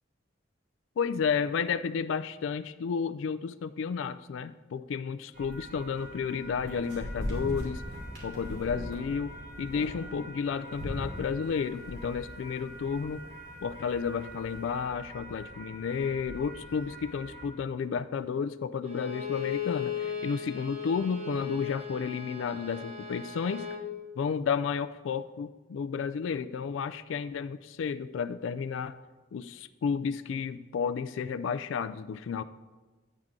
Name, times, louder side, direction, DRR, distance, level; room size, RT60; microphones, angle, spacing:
voice 1, 1.0-7.8 8.2-13.2 13.6-23.7 24.2-29.0 29.3-32.4, left 6 dB, 85° left, 12 dB, 0.3 m, -32 dB
sound 1, 5.3-17.5, equal, 55° right, 3.0 m, -41 dB
Bowed string instrument, 18.8-23.9, left 7 dB, 30° right, 1.1 m, -37 dB
9.3 x 8.8 x 3.7 m, 1.2 s
head